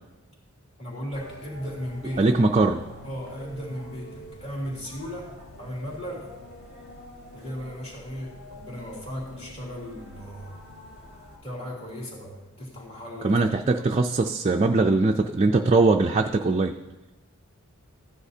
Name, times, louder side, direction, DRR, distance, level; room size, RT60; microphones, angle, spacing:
voice 1, 0.8-2.3 3.0-6.3 7.3-10.6 11.4-13.4 13.8-13.9, equal, 30° left, -4 dB, 2.9 m, -36 dB
sound 1, 1.1-11.4, left 1 dB, 85° left, 4.5 m, -45 dB
voice 2, 2.2-2.8 13.2-16.8, right 3 dB, 30° right, 3 dB, 0.4 m, -21 dB
15.0 x 9.8 x 2.8 m, 1.1 s
head